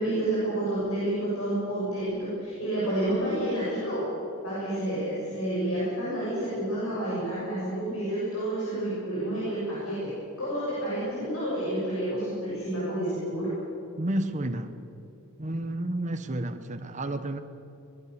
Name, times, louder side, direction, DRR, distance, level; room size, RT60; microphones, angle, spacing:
voice 1, 0.0-4.0 4.4-10.1 10.4-13.5, right 1 dB, 80° left, -8 dB, 7.4 m, -29 dB
voice 2, 14.0-14.7 15.4-17.4, right 1 dB, 35° right, 8 dB, 1.0 m, -31 dB
22.5 x 21.0 x 6.9 m, 2.9 s
head